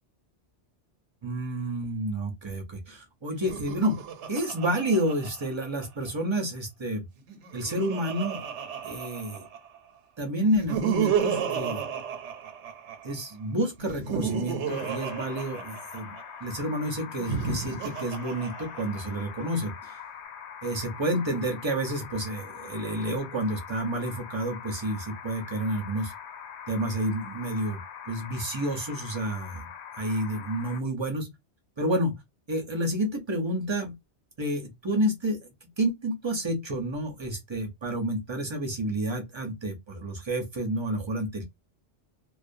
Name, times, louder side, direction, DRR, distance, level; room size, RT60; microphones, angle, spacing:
voice 1, 1.2-4.0 4.3-7.1 7.5-8.4 8.8-9.5 10.2-11.8 13.0-16.2 16.4-20.0 20.6-26.1 26.7-29.7 30.0-31.3 31.8-32.2 32.5-33.9 34.4-35.5 35.8-41.4, right 1 dB, 35° right, 0.4 m, -30 dB
Laughter, 3.3-6.1 7.2-9.8 10.4-13.2 13.8-16.2 17.1-19.2, right 7 dB, 85° right, 0.9 m, -33 dB
sound 1, 14.7-30.8, left 8 dB, 75° left, 0.9 m, -43 dB
2.3 x 2.2 x 2.5 m
omnidirectional pair, 1.2 m